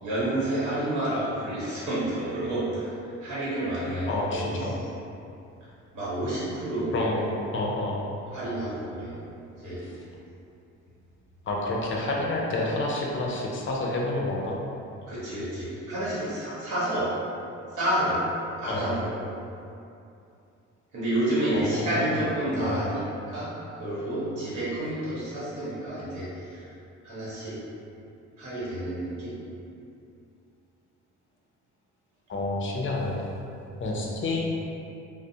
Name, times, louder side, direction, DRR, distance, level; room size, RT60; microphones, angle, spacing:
voice 1, 0.0-4.8 5.9-6.9 8.3-9.1 9.6-9.9 15.1-17.1 17.7-18.2 18.6-19.1 20.9-23.0 23.3-26.7 27.0-27.6 28.4-29.3 33.9-34.0, right 1 dB, 70° right, -10 dB, 1.0 m, -29 dB
voice 2, 4.1-4.7 6.9-8.0 9.8-10.0 11.5-14.6 18.7-18.9 21.5-22.2 22.5-22.8 32.3-33.3 33.8-34.4, left 2 dB, 40° left, -2 dB, 0.5 m, -29 dB
2.4 x 2.0 x 2.7 m, 2.6 s
cardioid pair, 90°, 30 cm